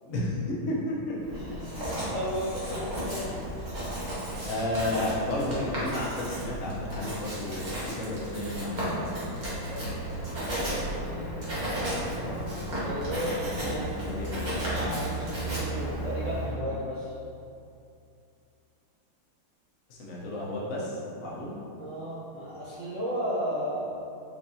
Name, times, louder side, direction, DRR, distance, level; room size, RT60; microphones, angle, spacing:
voice 1, 0.0-1.4 4.4-8.9 12.2-12.5 13.2-13.3 13.6-14.4 19.9-21.5, left 1 dB, 60° left, -5 dB, 0.7 m, -32 dB
Writing, 1.2-16.6, right 1 dB, 35° right, 0.7 m, -33 dB
voice 2, 1.3-3.4 9.5-11.3 12.7-13.9 14.6-17.1 21.8-23.9, equal, 75° right, -10 dB, 0.7 m, -35 dB
4.6 x 3.5 x 2.7 m, 2.6 s
omnidirectional pair, 2.3 m